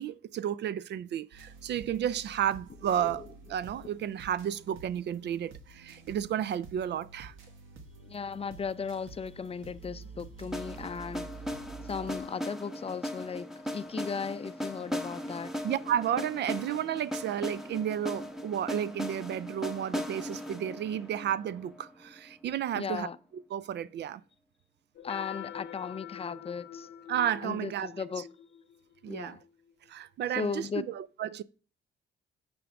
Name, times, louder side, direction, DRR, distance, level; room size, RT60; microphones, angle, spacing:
voice 1, 0.0-3.2 3.5-7.3 15.6-23.1 23.5-24.2 27.1-27.9 29.0-29.4 29.9-31.4, right 10 dB, 60° right, 0.4 m, -32 dB
sound 1, 1.3-12.2, right 4 dB, 80° right, 1.5 m, -49 dB
voice 2, 3.0-3.3 8.0-11.3 11.8-15.5 22.7-23.2 25.0-26.9 27.4-28.2 29.1-29.4 30.3-30.9, left 5 dB, 30° left, 0.5 m, -36 dB
sound 2, 10.5-22.4, equal, ahead, 1.1 m, -38 dB
sound 3, 25.0-29.7, left 9 dB, 70° left, 0.7 m, -44 dB
9.5 x 5.2 x 3.5 m
cardioid pair, 90°, 20 cm